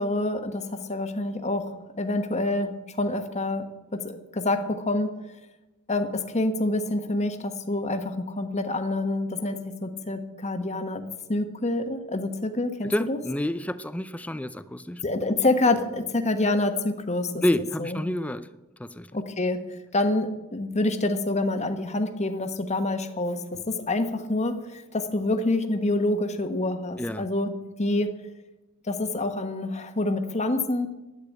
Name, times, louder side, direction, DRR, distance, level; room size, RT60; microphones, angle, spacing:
voice 1, 0.0-3.7 3.9-5.1 5.9-11.0 11.3-13.2 15.0-18.0 19.1-19.6 19.9-27.5 27.8-28.1 28.8-30.9, left 2 dB, 30° left, 7 dB, 1.3 m, -27 dB
voice 2, 12.8-15.0 17.4-18.5 18.8-19.1 27.0-27.2, left 1 dB, 5° left, 14 dB, 0.4 m, -28 dB
12.0 x 8.8 x 10.0 m, 1.1 s
head